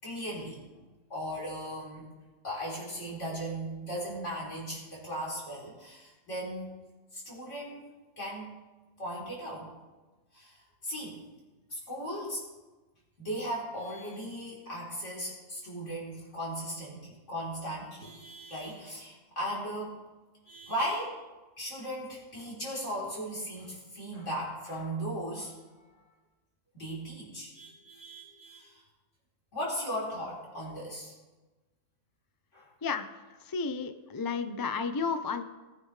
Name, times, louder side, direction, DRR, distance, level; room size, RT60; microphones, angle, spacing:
voice 1, 0.0-0.6 1.1-2.0 2.4-6.8 7.1-7.8 8.2-8.5 9.0-9.7 10.3-10.6 10.8-11.2 11.7-12.4 13.2-20.0 20.5-21.2 21.6-25.7 26.7-28.8 29.5-31.1 32.5-32.7, equal, 60° left, -5 dB, 4.1 m, -37 dB
voice 2, 33.4-35.4, left 5 dB, 35° left, 9 dB, 0.3 m, -32 dB
19.0 x 9.3 x 3.3 m, 1.2 s
omnidirectional pair, 1.4 m